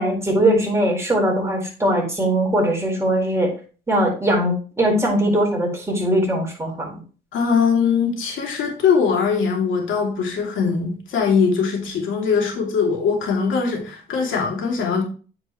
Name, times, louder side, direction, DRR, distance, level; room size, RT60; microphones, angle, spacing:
voice 1, 0.0-3.5 3.9-7.0, right 1 dB, 15° right, -1 dB, 4.5 m, -20 dB
voice 2, 7.3-15.0, left 5 dB, 80° left, 1 dB, 2.7 m, -21 dB
9.3 x 6.0 x 3.1 m, 0.37 s
cardioid pair, 90°, 20 cm